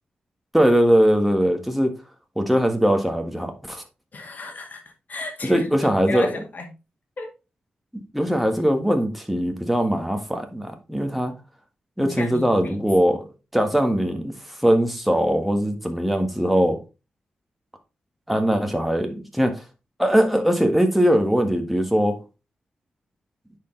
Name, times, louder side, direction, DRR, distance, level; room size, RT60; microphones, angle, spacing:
voice 1, 0.5-2.0 2.4-3.8 5.4-6.3 7.9-11.3 12.0-13.2 13.5-14.3 14.6-16.8 18.3-19.6 20.0-22.2, equal, ahead, 1.6 m, -21 dB
voice 2, 4.1-4.8 5.1-6.7 7.2-7.3 12.0-12.8 16.1-16.2, left 3 dB, 50° left, 2.1 m, -33 dB
9.7 x 4.8 x 3.3 m
cardioid pair, 80°, 4 cm